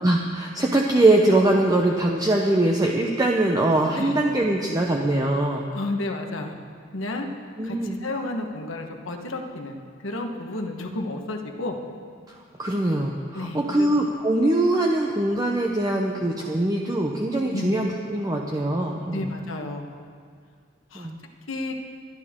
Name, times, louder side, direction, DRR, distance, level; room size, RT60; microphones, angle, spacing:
voice 1, 0.0-5.6 7.6-8.0 12.3-19.3 20.9-21.2, right 1 dB, 20° right, 0 dB, 0.8 m, -22 dB
voice 2, 5.7-6.5 6.9-7.3 7.6-9.8 10.0-11.8 13.3-13.9 17.5-17.8 19.1-19.9 20.9-21.1 21.5-21.7, left 2 dB, 80° left, 2 dB, 1.4 m, -31 dB
23.5 x 11.0 x 3.7 m, 2.1 s
head